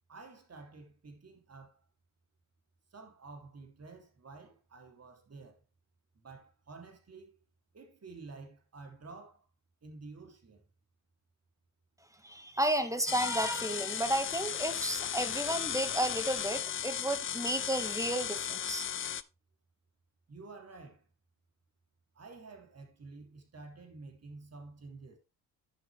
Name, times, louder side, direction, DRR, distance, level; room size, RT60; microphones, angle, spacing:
voice 1, 0.1-1.8 2.9-5.6 6.2-7.4 7.7-9.4 9.8-10.6 20.3-21.0 22.1-25.2, right 3 dB, 30° right, 3.2 m, -50 dB
voice 2, 12.2-18.9, right 1 dB, 5° right, 1.8 m, -32 dB
sound 1, 13.1-19.2, left 9 dB, 25° left, 0.6 m, -36 dB
10.5 x 7.2 x 3.5 m
hypercardioid pair, 60°, 47 cm